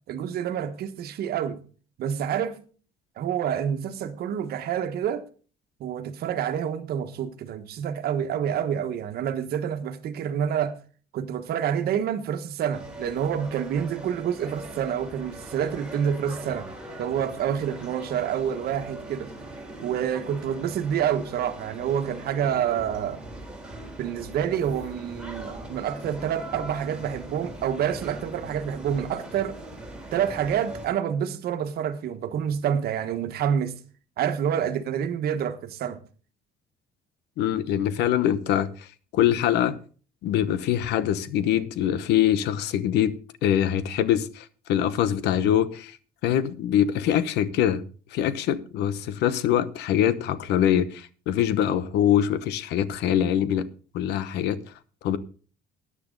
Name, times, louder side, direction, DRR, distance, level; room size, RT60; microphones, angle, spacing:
voice 1, 0.1-1.6 2.0-2.6 3.2-5.2 5.8-10.8 11.1-16.7 17.0-19.3 19.8-23.2 24.0-29.6 30.1-33.8 34.2-36.0, right 9 dB, 65° right, 1.4 m, -28 dB
sound 1, 12.7-30.9, right 1 dB, 5° right, 3.7 m, -41 dB
voice 2, 37.4-38.9 39.1-39.8 40.2-46.0 46.2-47.8 48.1-53.7 53.9-54.6 55.0-55.2, left 10 dB, 85° left, 0.9 m, -24 dB
13.5 x 9.6 x 3.9 m
cardioid pair, 110°, 17 cm